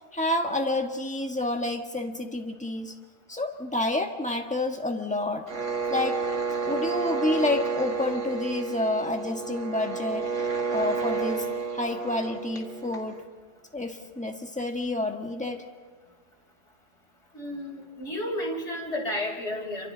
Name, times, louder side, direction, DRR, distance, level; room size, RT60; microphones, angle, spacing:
voice 1, 0.1-2.9 3.3-5.4 5.9-6.2 6.7-10.3 10.7-11.4 11.7-13.2 13.7-15.6, left 2 dB, 5° left, 3 dB, 1.4 m, -29 dB
sound 1, 5.5-13.2, right 4 dB, 80° right, 2.1 m, -30 dB
voice 2, 17.3-19.9, left 1 dB, 65° left, -1 dB, 4.0 m, -32 dB
27.5 x 24.5 x 4.0 m, 1.4 s
omnidirectional pair, 1.2 m